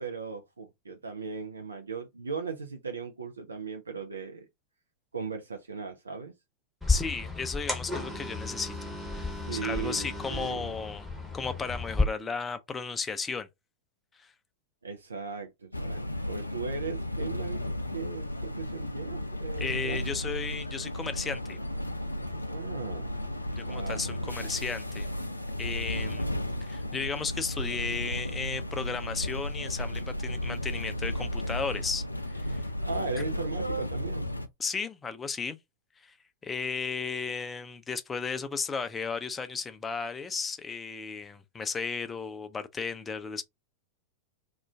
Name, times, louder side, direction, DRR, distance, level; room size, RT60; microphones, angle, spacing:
voice 1, 0.0-4.5 5.1-6.3 9.5-10.8 14.8-16.0 16.3-17.6 17.9-20.2 22.5-23.2 23.6-24.6 32.8-34.3, right 5 dB, 75° right, 0.4 m, -37 dB
sound 1, 6.8-12.0, left 3 dB, ahead, 0.8 m, -32 dB
voice 2, 6.9-8.7 9.1-11.1 11.3-13.5 14.2-14.3 19.6-21.6 23.5-25.1 25.6-26.3 26.6-32.0 32.3-32.7 33.2-33.3 34.6-35.6 36.0-36.1 36.4-43.4, left 5 dB, 15° left, 0.4 m, -34 dB
sound 2, 15.7-34.5, left 1 dB, 85° left, 0.3 m, -34 dB
2.4 x 2.2 x 3.3 m
figure-of-eight pair, 90°, 0 cm